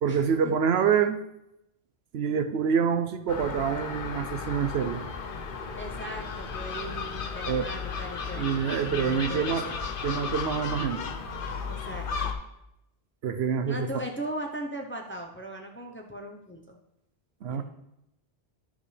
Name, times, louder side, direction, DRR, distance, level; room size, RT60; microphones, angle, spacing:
voice 1, 0.0-1.2 2.1-5.0 7.5-7.7 8.4-9.7 10.0-11.0 13.2-13.9 17.4-17.6, right 7 dB, 75° right, 9 dB, 0.9 m, -26 dB
Gull seagull, 3.3-12.3, left 5 dB, 55° left, 0.9 m, -34 dB
voice 2, 5.8-9.8 11.7-12.3 13.7-16.8 17.5-17.6, right 1 dB, 15° left, 2 dB, 0.6 m, -39 dB
12.5 x 5.1 x 3.3 m, 0.84 s
omnidirectional pair, 1.1 m